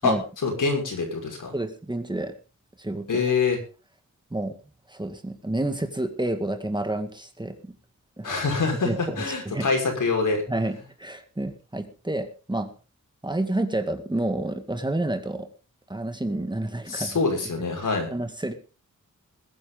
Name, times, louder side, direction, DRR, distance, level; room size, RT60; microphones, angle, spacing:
voice 1, 0.4-1.5 3.1-3.6 8.2-10.4 16.9-18.1, left 4 dB, 80° left, 2 dB, 5.9 m, -25 dB
voice 2, 1.5-2.3 2.8-3.2 4.3-4.5 4.9-7.8 8.2-8.4 8.8-9.7 10.5-12.7 13.2-15.5 15.9-17.2 18.1-18.5, right 1 dB, 15° right, 6 dB, 1.9 m, -29 dB
21.0 x 9.9 x 3.9 m, 0.35 s
wide cardioid pair, 120°, 31 cm